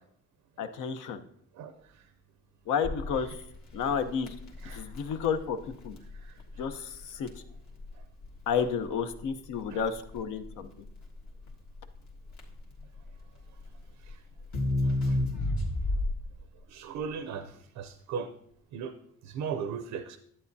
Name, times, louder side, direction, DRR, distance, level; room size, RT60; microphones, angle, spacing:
voice 1, 0.6-1.2 2.7-3.4 3.7-4.3 4.7-6.0 6.6-7.3 8.5-10.7, left 6 dB, 85° left, 8 dB, 0.8 m, -31 dB
Crackle, 2.8-16.4, left 1 dB, 65° left, 1.7 m, -33 dB
voice 2, 14.8-15.2 16.7-18.3 18.7-18.9 19.2-20.2, right 6 dB, 90° right, 10 dB, 0.6 m, -37 dB
11.0 x 8.5 x 2.7 m, 0.69 s
cardioid pair, 90°, 30 cm